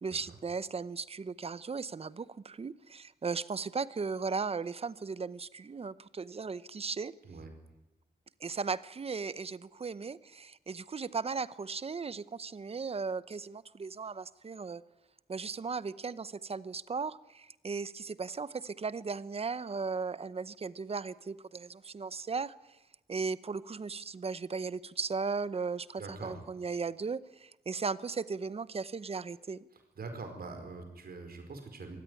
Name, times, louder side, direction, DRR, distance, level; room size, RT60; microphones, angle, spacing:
voice 1, 0.0-7.1 8.4-14.8 15.3-22.5 23.1-29.7, right 5 dB, 35° right, 17 dB, 0.8 m, -37 dB
voice 2, 26.0-26.4 30.0-32.0, right 3 dB, 65° right, 5 dB, 4.8 m, -43 dB
24.5 x 16.5 x 9.8 m, 0.98 s
wide cardioid pair, 130°, 17 cm